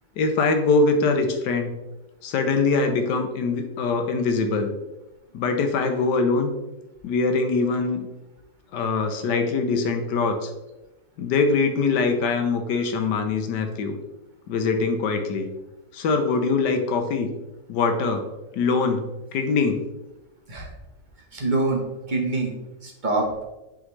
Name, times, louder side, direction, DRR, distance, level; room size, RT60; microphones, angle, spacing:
voice 1, 0.2-1.7 2.2-4.7 5.3-6.5 7.0-8.1 8.7-10.5 11.2-14.0 14.5-15.5 15.9-17.3 17.7-18.2 18.5-19.1 19.3-19.8, left 4 dB, 85° left, 6 dB, 1.4 m, -23 dB
voice 2, 21.3-22.5 22.8-23.4, right 2 dB, 35° right, 0 dB, 0.9 m, -25 dB
8.5 x 3.7 x 3.2 m, 1.0 s
omnidirectional pair, 1.8 m